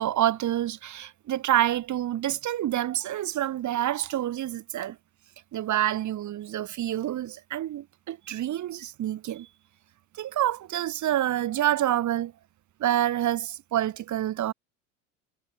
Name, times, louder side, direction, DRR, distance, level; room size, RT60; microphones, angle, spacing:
voice 1, 0.0-5.0 5.5-9.5 10.2-12.3 12.8-14.5, right 12 dB, 45° right, 4.1 m, -27 dB
hypercardioid pair, 80°, 39 cm